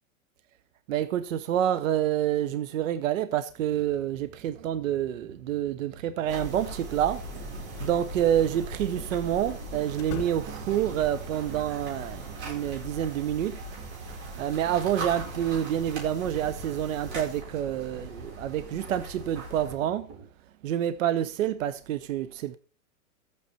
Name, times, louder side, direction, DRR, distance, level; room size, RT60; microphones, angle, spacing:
voice 1, 0.9-7.2 7.8-20.1 20.6-22.6, right 11 dB, 65° right, 1.0 m, -28 dB
sound 1, 3.6-20.3, right 6 dB, 25° right, 2.2 m, -48 dB
sound 2, 6.3-19.7, right 2 dB, 50° right, 7.7 m, -39 dB
sound 3, 7.5-7.7 7.9-8.0 9.9-10.8 12.4-13.3, left 8 dB, 50° left, 2.3 m, -42 dB
13.5 x 8.6 x 4.3 m
hypercardioid pair, 150°, 43 cm